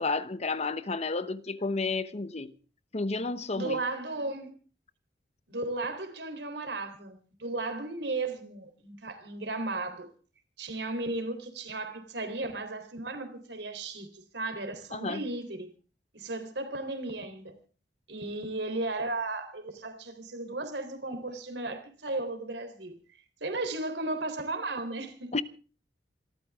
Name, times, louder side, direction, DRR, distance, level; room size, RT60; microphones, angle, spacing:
voice 1, 0.0-2.5 2.9-3.8 14.9-15.3 25.3-25.4, left 3 dB, 40° left, 0.9 m, -31 dB
voice 2, 3.5-4.5 5.5-10.1 10.6-15.7 16.1-17.6 18.1-23.0 23.4-25.3, right 2 dB, 75° right, 3.6 m, -35 dB
27.5 x 14.0 x 3.6 m
head